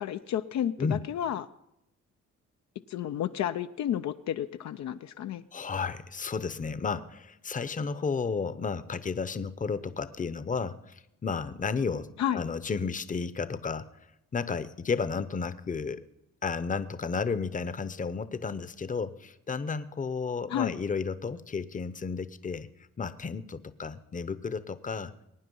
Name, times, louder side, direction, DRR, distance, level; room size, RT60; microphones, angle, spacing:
voice 1, 0.0-1.5 2.9-5.4 12.2-12.4 20.5-20.8, left 10 dB, 65° left, 9 dB, 0.6 m, -31 dB
voice 2, 5.5-13.9 14.3-16.0 16.4-22.7 23.0-25.1, left 5 dB, 25° left, 14 dB, 0.8 m, -32 dB
22.0 x 9.4 x 5.4 m, 0.84 s
cardioid pair, 90°, 30 cm